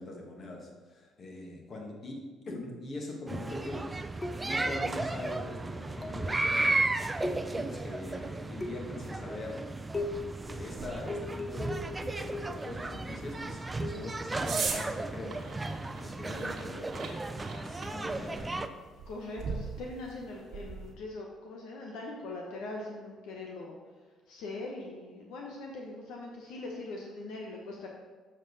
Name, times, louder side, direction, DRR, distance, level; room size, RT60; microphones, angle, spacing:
voice 1, 0.0-4.0 4.4-6.8 7.2-9.7 10.5-11.8 12.2-15.6 15.9-18.7, left 2 dB, 45° left, 0 dB, 1.7 m, -42 dB
sound 1, 3.3-18.7, right 2 dB, 20° right, 0.4 m, -34 dB
sound 2, 4.2-4.8 6.0-6.4 7.2-7.8 8.6-9.1 9.9-10.4 11.1-12.7 13.8-14.2 15.7-15.9, left 2 dB, 25° left, 0.6 m, -39 dB
sound 3, 10.0-20.9, right 5 dB, 55° right, 1.3 m, -42 dB
voice 2, 19.1-23.8 24.3-27.9, left 2 dB, 80° left, -1 dB, 0.9 m, -41 dB
7.2 x 5.4 x 4.0 m, 1.4 s
supercardioid pair, 75°, 0 cm